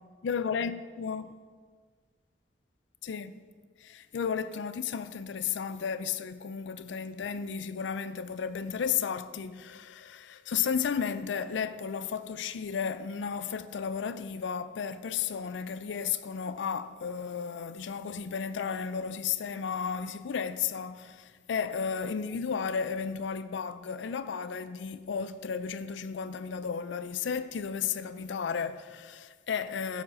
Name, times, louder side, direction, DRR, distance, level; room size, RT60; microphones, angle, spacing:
voice 1, 0.2-1.3 3.0-3.4 3.8-30.0, left 6 dB, 75° left, 0.4 m, -33 dB
12.5 x 5.0 x 5.3 m
head